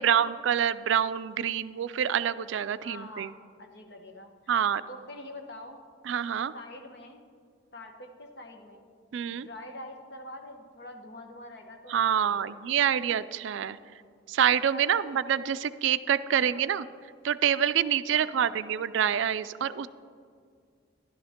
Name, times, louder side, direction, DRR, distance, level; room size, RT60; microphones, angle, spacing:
voice 1, 0.0-3.3 4.5-4.8 6.1-6.5 9.1-9.5 11.9-13.8 14.3-16.9 17.2-19.9, right 9 dB, 70° right, 14 dB, 0.3 m, -26 dB
voice 2, 2.8-4.5 4.9-5.8 6.5-7.2 7.7-8.9 9.3-12.5 14.7-15.0 16.3-16.6 18.1-18.8, left 1 dB, 55° left, 4 dB, 1.1 m, -45 dB
13.0 x 11.5 x 3.6 m, 2.1 s
head